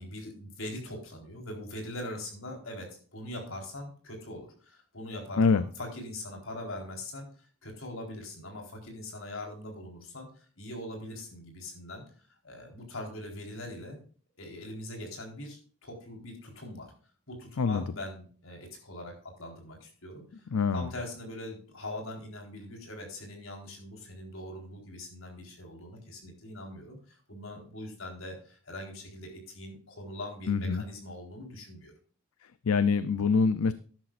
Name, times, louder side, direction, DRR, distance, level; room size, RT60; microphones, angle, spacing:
voice 1, 0.0-12.0 12.4-14.0 14.4-16.9 17.3-20.5 20.7-31.9, left 1 dB, 70° left, 1 dB, 4.2 m, -42 dB
voice 2, 20.5-20.9 30.5-30.8 32.6-33.7, left 5 dB, 85° left, 14 dB, 0.5 m, -25 dB
13.0 x 10.5 x 2.5 m, 0.42 s
head